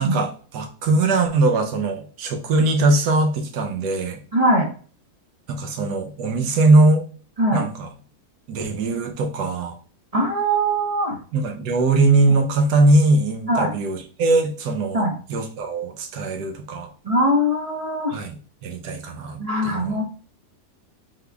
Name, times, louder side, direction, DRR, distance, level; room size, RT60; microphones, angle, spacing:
voice 1, 0.0-4.2 5.5-7.1 7.5-7.9 8.5-9.8 11.3-16.9 18.1-18.4 18.6-20.0, right 2 dB, 80° right, 4 dB, 1.4 m, -21 dB
voice 2, 4.3-4.7 7.4-7.6 10.1-11.2 13.5-13.7 14.9-15.1 17.0-18.2 19.4-20.0, equal, 65° right, -1 dB, 0.3 m, -21 dB
3.6 x 3.6 x 3.4 m, 0.40 s
omnidirectional pair, 1.8 m